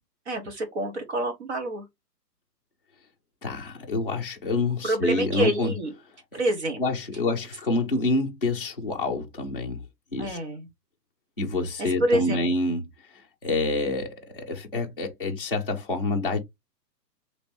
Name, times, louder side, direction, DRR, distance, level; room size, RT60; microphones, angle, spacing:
voice 1, 0.3-1.8 4.8-5.9 6.3-6.8 10.2-10.7 11.8-12.4, right 1 dB, 40° right, 1.1 m, -27 dB
voice 2, 3.4-5.7 6.3-6.4 6.8-9.8 10.1-10.4 11.4-12.9 13.4-16.4, left 2 dB, 40° left, 0.4 m, -27 dB
2.9 x 2.9 x 3.3 m
hypercardioid pair, 170°, 50 cm